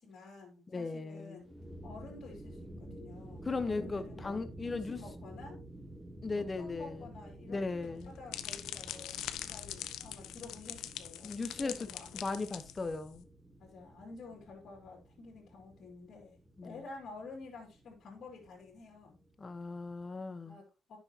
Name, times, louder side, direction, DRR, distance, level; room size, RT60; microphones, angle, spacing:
voice 1, 0.0-1.5 1.8-5.6 6.3-12.1 13.6-16.3 16.6-19.2 20.4-21.0, left 3 dB, 60° left, 2.6 m, -50 dB
voice 2, 0.7-1.4 3.5-5.0 6.2-7.1 7.5-8.1 11.2-11.9 12.1-13.3 16.6-16.8 19.4-20.6, left 3 dB, 30° left, 0.9 m, -37 dB
sound 1, 1.4-20.2, right 1 dB, 10° right, 2.4 m, -51 dB
sound 2, 7.8-13.2, left 12 dB, 85° left, 0.5 m, -43 dB
9.7 x 6.0 x 2.8 m
cardioid pair, 90°, 0 cm